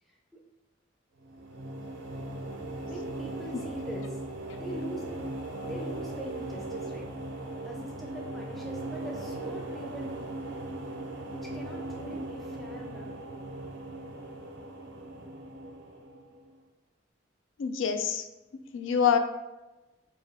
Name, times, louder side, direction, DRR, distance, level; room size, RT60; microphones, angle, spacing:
sound 1, 1.2-16.5, right 1 dB, 75° right, 0.5 m, -38 dB
voice 1, 2.9-4.2 4.6-5.2 5.5-7.1 7.6-10.1 11.3-13.1, right 1 dB, ahead, -2 dB, 0.4 m, -42 dB
voice 2, 17.6-18.2 18.7-19.2, left 7 dB, 80° left, 7 dB, 0.3 m, -26 dB
4.2 x 2.3 x 3.4 m, 1.1 s
head